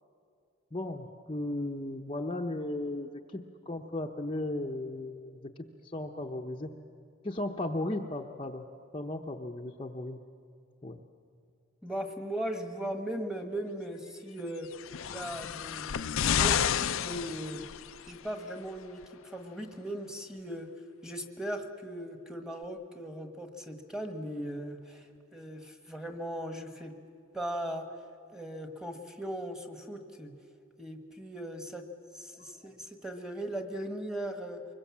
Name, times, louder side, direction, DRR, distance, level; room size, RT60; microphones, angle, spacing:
voice 1, 0.7-3.4 3.7-5.5 5.8-6.7 7.2-8.7 8.9-10.2 10.8-11.0 32.3-32.4, left 1 dB, 25° left, 1 dB, 0.8 m, -35 dB
voice 2, 11.8-14.7 15.1-17.6 18.1-20.7 21.0-26.9 27.3-27.9 28.3-30.3 30.8-31.9 32.1-34.6, right 1 dB, 5° right, 5 dB, 1.4 m, -38 dB
sound 1, 14.7-18.1 19.0-19.1, left 9 dB, 65° left, 0.5 m, -30 dB
24.5 x 22.0 x 7.4 m, 2.3 s
head